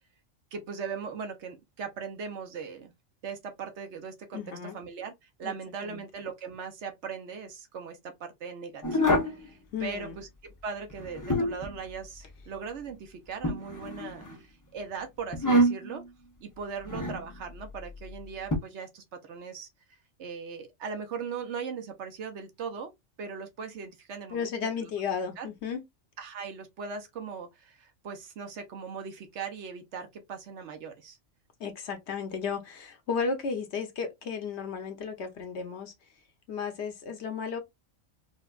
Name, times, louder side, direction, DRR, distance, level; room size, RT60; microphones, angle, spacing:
voice 1, 0.5-2.9 3.2-4.4 4.7-16.0 16.4-19.7 20.2-22.9 23.2-24.9 25.4-25.5 26.2-31.2, right 5 dB, 65° right, 1.0 m, -39 dB
voice 2, 4.3-4.8 5.4-5.5 5.8-6.0 9.7-10.2 24.3-25.8 31.6-35.9 36.5-37.6, left 6 dB, 60° left, 1.0 m, -34 dB
sound 1, 8.8-9.4 10.9-11.7 13.4-14.3 15.3-16.0 16.9-17.2 18.5-18.6, equal, 25° left, 0.4 m, -26 dB
4.3 x 2.2 x 2.3 m
omnidirectional pair, 1.3 m